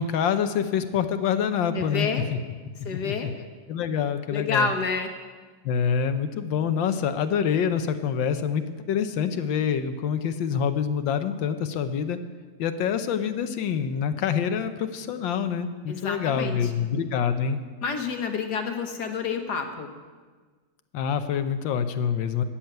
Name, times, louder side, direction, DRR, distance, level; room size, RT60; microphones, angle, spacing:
voice 1, 0.0-2.4 2.9-3.3 3.7-4.7 5.6-12.2 12.6-17.6 20.9-22.4, left 7 dB, 85° left, 9 dB, 1.5 m, -26 dB
voice 2, 1.7-2.3 2.9-3.3 4.3-5.1 15.9-16.9 17.8-19.9, left 5 dB, 65° left, 5 dB, 1.7 m, -29 dB
13.5 x 7.3 x 9.2 m, 1.4 s
omnidirectional pair, 2.0 m